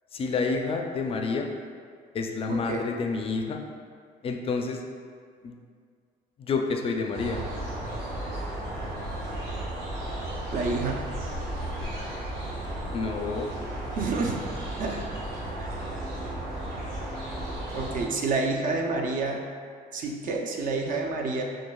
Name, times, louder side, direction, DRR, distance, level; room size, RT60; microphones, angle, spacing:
voice 1, 0.1-1.5 2.1-3.6 4.2-4.8 5.4-5.6 6.4-7.4 12.9-13.5, left 4 dB, 35° left, 3 dB, 0.4 m, -29 dB
voice 2, 2.5-2.9 10.5-11.0 14.0-14.4 14.8-15.0 15.6-15.8 17.7-19.4 19.9-21.4, right 3 dB, 55° right, 1 dB, 0.5 m, -28 dB
sound 1, 7.1-18.0, right 1 dB, 70° right, 1.4 m, -34 dB
6.2 x 2.3 x 2.3 m, 2.1 s
cardioid pair, 110°, 17 cm